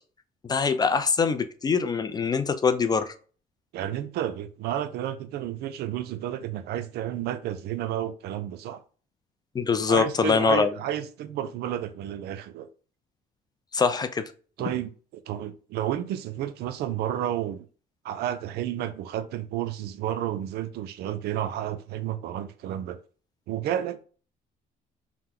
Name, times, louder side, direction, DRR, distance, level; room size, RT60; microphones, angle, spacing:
voice 1, 0.5-3.1 9.5-10.7 13.7-14.3, left 5 dB, 25° left, 0.3 m, -23 dB
voice 2, 3.7-8.8 9.9-12.7 14.6-14.9 15.3-17.7 18.0-23.0 23.5-24.0, right 11 dB, 75° right, 0.4 m, -31 dB
2.9 x 2.1 x 3.6 m
cardioid pair, 110°, 17 cm